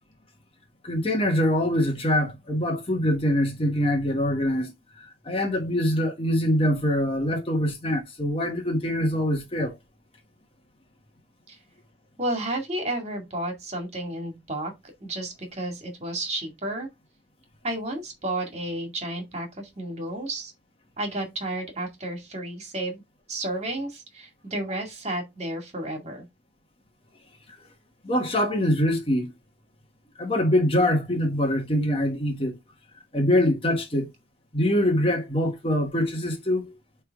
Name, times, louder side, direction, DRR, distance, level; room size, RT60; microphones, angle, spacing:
voice 1, 0.8-9.8 28.0-29.3 30.2-32.6 33.1-34.1 34.5-36.7, left 1 dB, 30° left, 1.3 m, -24 dB
voice 2, 12.2-14.7 15.0-16.9 17.6-20.5 21.0-23.0 23.3-26.3, right 1 dB, 35° right, 2.1 m, -32 dB
8.6 x 3.5 x 3.6 m
head